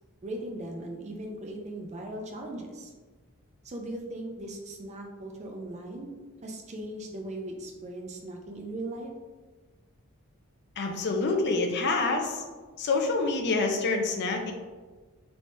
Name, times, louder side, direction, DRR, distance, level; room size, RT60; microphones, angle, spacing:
voice 1, 0.2-2.9 3.6-6.1 6.4-9.1, right 1 dB, 30° right, 1 dB, 0.4 m, -38 dB
voice 2, 10.8-12.4 12.8-14.5, left 3 dB, 50° left, 3 dB, 0.4 m, -27 dB
3.4 x 3.2 x 2.6 m, 1.4 s
head